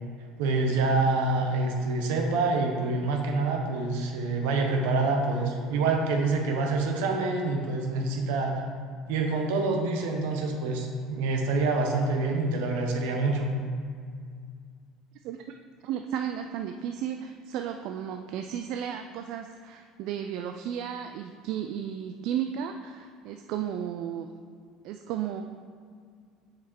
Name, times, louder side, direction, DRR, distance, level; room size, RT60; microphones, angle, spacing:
voice 1, 0.4-8.6 9.1-13.5, right 3 dB, 85° right, 2 dB, 1.1 m, -26 dB
voice 2, 15.2-15.6 15.8-24.3 24.8-25.4, right 9 dB, 65° right, 5 dB, 0.3 m, -34 dB
7.1 x 5.0 x 4.5 m, 2.1 s
supercardioid pair, 110°, 0 cm